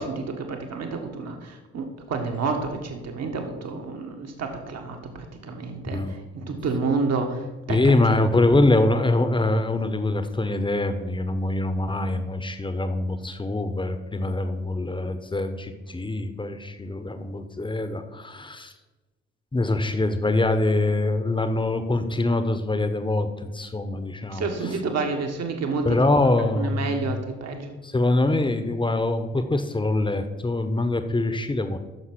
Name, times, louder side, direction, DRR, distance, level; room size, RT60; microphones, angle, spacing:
voice 1, 0.0-7.9 24.3-26.0 26.5-27.7, right 4 dB, 50° right, 4 dB, 1.7 m, -29 dB
voice 2, 5.9-6.2 7.7-18.7 19.5-24.7 25.8-27.1 27.8-31.8, left 2 dB, 15° left, 9 dB, 1.1 m, -24 dB
9.0 x 6.5 x 6.2 m, 1.2 s
figure-of-eight pair, 40°, 33 cm